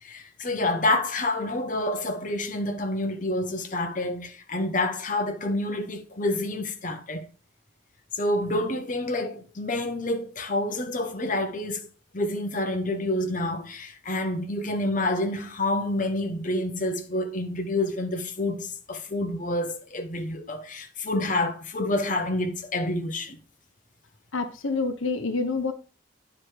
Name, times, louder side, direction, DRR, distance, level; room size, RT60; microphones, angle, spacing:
voice 1, 0.0-7.3 8.1-11.9 12.1-23.4, left 1 dB, 40° left, 1.1 m, -28 dB
voice 2, 24.3-25.7, left 4 dB, 85° left, 1.0 m, -27 dB
9.8 x 5.0 x 4.7 m
head